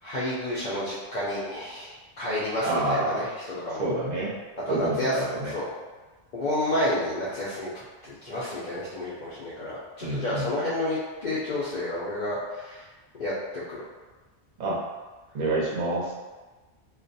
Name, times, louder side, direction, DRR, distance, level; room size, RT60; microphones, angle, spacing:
voice 1, 0.0-3.9 4.7-5.7 6.3-12.9 13.2-13.8, left 1 dB, 55° left, -9 dB, 0.5 m, -30 dB
voice 2, 2.6-3.2 3.8-4.3 4.7-5.5 10.0-10.5 14.6-14.8 15.3-16.1, right 2 dB, 50° right, -5 dB, 0.6 m, -27 dB
2.3 x 2.2 x 2.6 m, 1.3 s
omnidirectional pair, 1.1 m